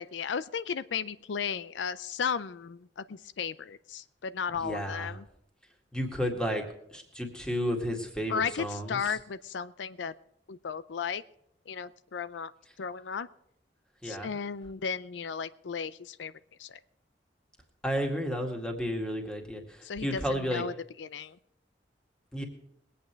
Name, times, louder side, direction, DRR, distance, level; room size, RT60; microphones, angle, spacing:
voice 1, 0.0-5.2 8.3-10.1 10.5-11.2 11.7-12.5 12.8-13.3 14.0-16.3 16.6-16.8 19.8-20.7 21.0-21.4, left 6 dB, 85° left, 15 dB, 0.5 m, -35 dB
voice 2, 4.5-5.2 5.9-6.7 6.9-9.1 14.0-14.3 17.8-20.6 22.3-22.4, equal, 5° left, 3 dB, 2.0 m, -32 dB
21.5 x 8.6 x 4.6 m, 0.77 s
head